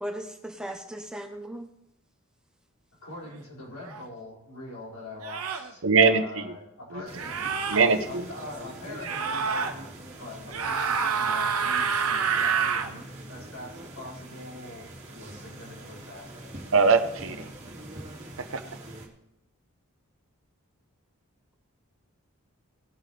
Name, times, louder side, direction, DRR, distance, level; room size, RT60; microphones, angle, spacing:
voice 1, 0.0-1.7, equal, 5° right, 4 dB, 0.8 m, -37 dB
voice 2, 3.0-7.4 8.1-16.7, left 2 dB, 80° left, -5 dB, 5.4 m, -43 dB
sound 1, 3.8-4.0 5.2-5.7 7.1-7.8 9.0-9.7 10.5-12.9, right 6 dB, 85° right, 1.2 m, -27 dB
voice 3, 5.8-6.5 6.9-7.0 7.7-8.3 16.7-17.5 18.4-18.6, right 4 dB, 65° right, 9 dB, 0.9 m, -22 dB
sound 2, 7.0-19.1, right 1 dB, 30° right, 2.4 m, -44 dB
18.5 x 8.1 x 3.4 m, 0.78 s
head